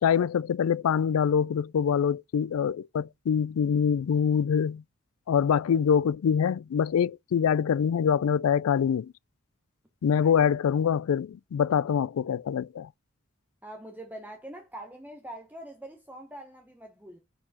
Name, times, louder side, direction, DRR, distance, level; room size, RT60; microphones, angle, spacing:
voice 1, 0.0-4.8 5.3-9.1 10.0-12.9, left 7 dB, 90° left, 0.3 m, -25 dB
voice 2, 13.6-17.2, right 1 dB, 10° right, 1.0 m, -44 dB
7.6 x 4.6 x 4.1 m
head